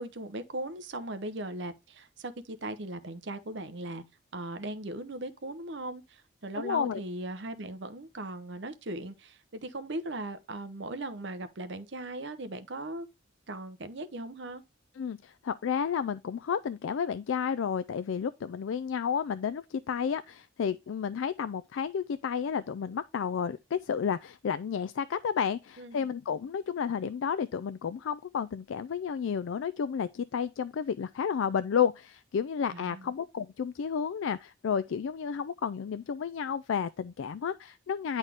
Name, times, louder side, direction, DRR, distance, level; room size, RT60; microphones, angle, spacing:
voice 1, 0.0-4.0 4.3-13.1 13.5-14.6 25.8-26.1 32.7-33.1, right 1 dB, 60° right, 0.8 m, -38 dB
voice 2, 6.5-7.0 15.0-38.2, left 7 dB, 70° left, 0.4 m, -31 dB
9.8 x 4.1 x 3.4 m
head